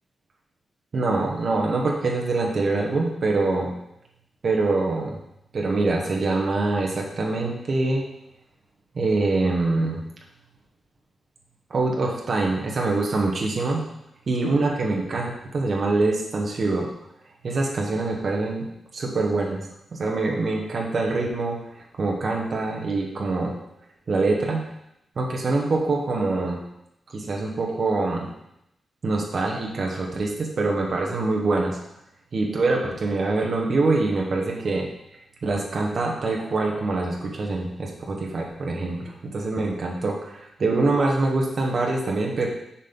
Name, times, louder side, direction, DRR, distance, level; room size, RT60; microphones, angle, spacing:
voice 1, 0.9-3.7 4.4-5.2 5.5-8.0 8.9-10.0 11.7-13.8 14.3-16.9 17.4-18.7 18.9-19.6 19.9-21.6 22.0-23.5 24.1-24.6 25.2-26.6 27.1-28.3 29.0-31.8 32.3-34.9 35.4-42.5, right 3 dB, 45° right, -1 dB, 1.2 m, -24 dB
6.4 x 5.3 x 3.8 m, 0.82 s
wide cardioid pair, 160°, 0 cm